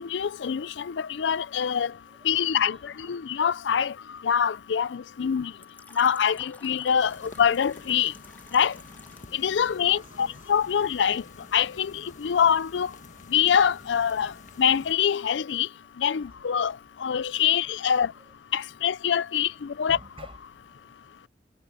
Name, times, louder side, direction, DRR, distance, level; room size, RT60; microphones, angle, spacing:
voice 1, 0.0-1.9 2.2-3.9 4.2-5.5 6.0-8.1 8.5-8.7 9.3-11.2 11.5-12.9 13.3-14.3 14.6-15.7 16.0-18.1 18.5-20.0, left 8 dB, 75° left, 0.4 m, -24 dB
voice 2, 2.1-3.2 9.8-10.4 16.2-16.4 17.9-18.3 19.8-21.3, right 1 dB, 30° right, 7.3 m, -51 dB
Fill (with liquid), 5.6-9.5, left 2 dB, 10° left, 1.9 m, -51 dB
sound 1, 7.0-14.9, left 2 dB, 45° left, 1.7 m, -49 dB
head